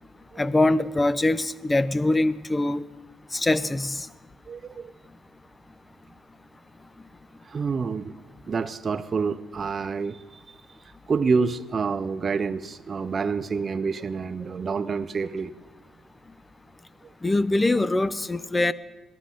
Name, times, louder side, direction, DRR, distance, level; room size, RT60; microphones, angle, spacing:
voice 1, 0.4-2.8 3.3-4.0 17.2-18.7, left 2 dB, 20° left, 16 dB, 0.5 m, -23 dB
voice 2, 4.5-4.9 7.5-8.1 8.5-10.2 10.5-10.6 11.1-15.5 17.0-17.1, right 5 dB, 40° right, 10 dB, 0.5 m, -28 dB
18.0 x 13.0 x 3.8 m, 1.2 s
cardioid pair, 90°, 0 cm